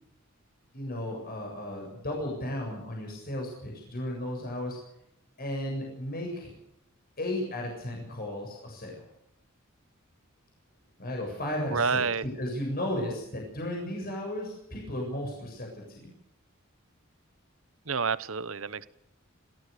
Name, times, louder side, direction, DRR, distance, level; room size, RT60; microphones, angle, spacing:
voice 1, 0.7-4.8 5.4-6.5 7.2-9.0 11.0-16.1, left 1 dB, 50° left, 0 dB, 7.6 m, -34 dB
voice 2, 11.7-12.2 17.9-18.9, right 5 dB, 75° right, 17 dB, 1.0 m, -28 dB
27.5 x 17.5 x 6.9 m, 0.81 s
head